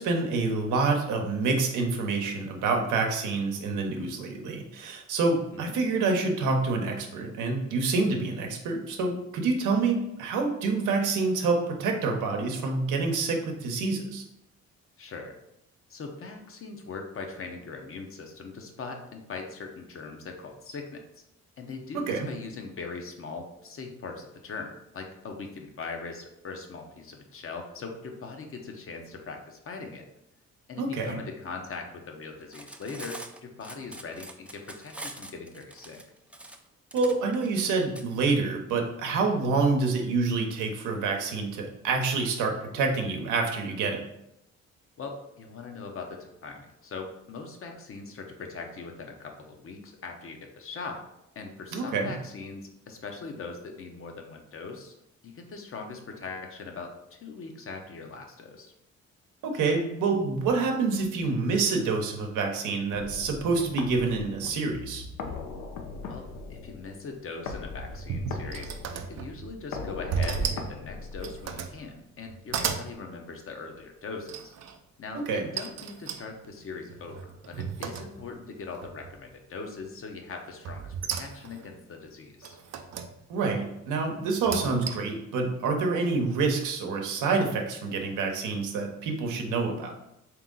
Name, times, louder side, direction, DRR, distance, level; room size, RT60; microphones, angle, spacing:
voice 1, 0.0-14.2 22.1-22.3 30.8-31.2 36.9-44.0 51.7-52.1 59.4-65.0 75.3-75.5 83.3-89.9, right 4 dB, 90° right, 3 dB, 0.8 m, -27 dB
voice 2, 15.0-15.4 15.9-21.2 21.6-30.0 30.7-36.0 45.0-51.0 51.3-54.9 55.2-58.7 66.0-74.5 75.0-82.6, left 4 dB, 45° left, 3 dB, 0.8 m, -41 dB
Cutlery silverware, 32.4-38.0, right 1 dB, 5° right, 0.3 m, -43 dB
sound 1, 62.9-71.9, left 4 dB, 80° left, 0.6 m, -40 dB
sound 2, 67.7-69.6 70.1-70.7 71.1-71.8 72.2-72.9 74.3-74.8 75.6-78.5 78.8-79.3 80.6-81.7 82.4-83.1 84.3-85.2, right 6 dB, 60° right, 0.5 m, -34 dB
3.6 x 2.9 x 3.8 m, 0.84 s
cardioid pair, 90°, 30 cm